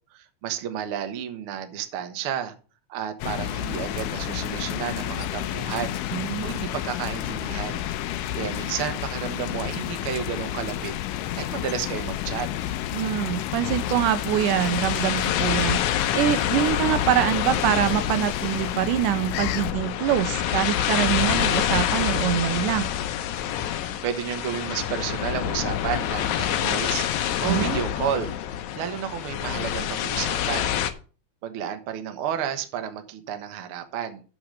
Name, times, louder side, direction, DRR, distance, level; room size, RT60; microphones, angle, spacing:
voice 1, 0.1-2.5 2.9-6.0 6.4-7.8 8.3-10.9 11.3-12.8 24.0-28.3 28.8-30.7 31.4-34.2, right 9 dB, 65° right, 1.4 m, -31 dB
sound 1, 3.2-19.7, left 12 dB, 90° left, 2.2 m, -31 dB
voice 2, 6.1-6.7 12.9-15.8 16.1-22.9 27.4-27.8, right 12 dB, 85° right, 2.2 m, -24 dB
sound 2, 13.6-30.9, left 10 dB, 75° left, 2.0 m, -27 dB
7.1 x 6.4 x 6.4 m
omnidirectional pair, 3.7 m